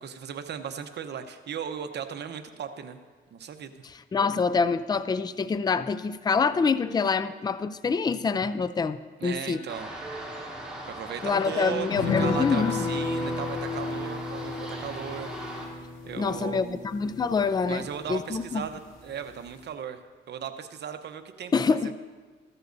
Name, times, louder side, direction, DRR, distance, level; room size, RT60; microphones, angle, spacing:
voice 1, 0.0-3.0 3.3-3.7 9.2-9.9 10.9-11.9 12.2-15.3 16.1-16.8 17.7-20.0 20.3-21.9, right 8 dB, 60° right, 8 dB, 0.9 m, -36 dB
voice 2, 4.1-9.0 9.2-9.6 11.2-12.9 16.1-18.6 21.5-21.9, left 5 dB, 20° left, 13 dB, 0.4 m, -26 dB
sound 1, 9.7-15.7, right 1 dB, 5° right, 3.3 m, -39 dB
sound 2, 11.9-18.7 19.0-19.1 19.4-19.6, left 3 dB, 90° left, 2.1 m, -33 dB
15.5 x 13.5 x 2.7 m, 1.4 s
cardioid pair, 90°, 20 cm